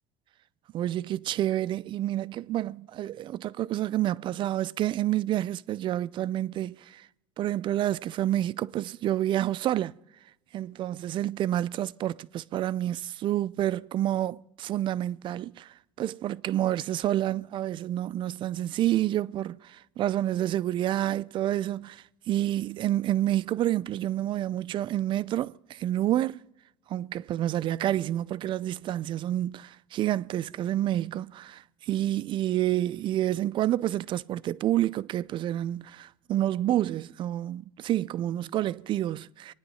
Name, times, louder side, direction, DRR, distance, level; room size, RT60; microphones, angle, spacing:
voice 1, 0.7-7.0 7.4-9.9 10.5-15.7 16.0-26.4 26.9-39.5, right 13 dB, 45° right, 0.5 m, -29 dB
25.0 x 9.8 x 5.6 m
supercardioid pair, 100°, 11 cm